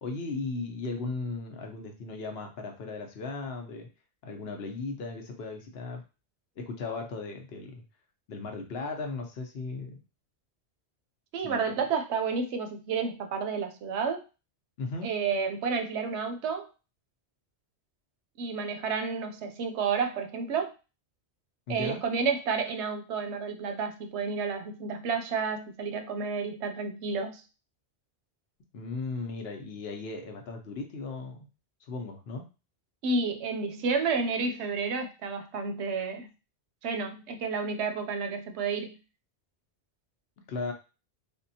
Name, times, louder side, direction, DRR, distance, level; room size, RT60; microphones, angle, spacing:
voice 1, 0.0-3.9 4.2-6.0 6.6-7.8 8.3-10.0 11.4-11.7 14.8-15.1 21.7-22.0 28.7-31.5 31.9-32.4 40.5-40.7, left 3 dB, 65° left, 3 dB, 0.9 m, -36 dB
voice 2, 11.3-14.2 15.0-16.7 18.4-20.7 21.7-27.4 33.0-36.3 36.8-38.9, right 5 dB, 80° right, 6 dB, 0.8 m, -30 dB
3.5 x 2.2 x 2.7 m, 0.31 s
omnidirectional pair, 1.1 m